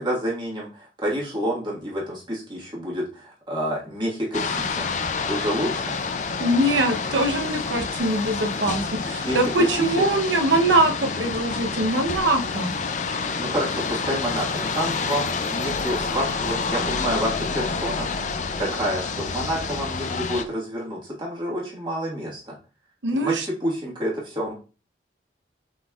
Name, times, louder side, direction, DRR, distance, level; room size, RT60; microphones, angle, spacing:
voice 1, 0.0-4.9 5.3-5.9 9.0-9.7 13.4-18.1 18.6-22.5 23.1-24.5, equal, 25° right, -4 dB, 1.5 m, -28 dB
sound 1, 4.3-20.4, left 4 dB, 40° left, 0.4 m, -28 dB
voice 2, 6.4-12.7 23.0-23.5, right 1 dB, 80° right, 5 dB, 0.8 m, -22 dB
5.4 x 4.0 x 2.4 m, 0.35 s
head